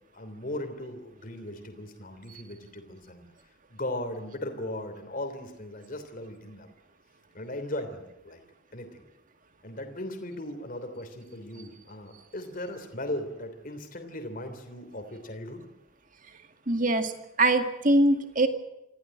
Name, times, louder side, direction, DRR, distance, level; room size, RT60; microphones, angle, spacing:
voice 1, 0.1-3.3 3.7-6.7 7.3-8.4 8.7-9.0 9.6-15.6, left 1 dB, 40° left, 6 dB, 3.1 m, -37 dB
voice 2, 16.7-17.1 17.4-18.5, right 1 dB, 40° right, 7 dB, 2.1 m, -22 dB
26.0 x 15.5 x 8.9 m, 0.92 s
head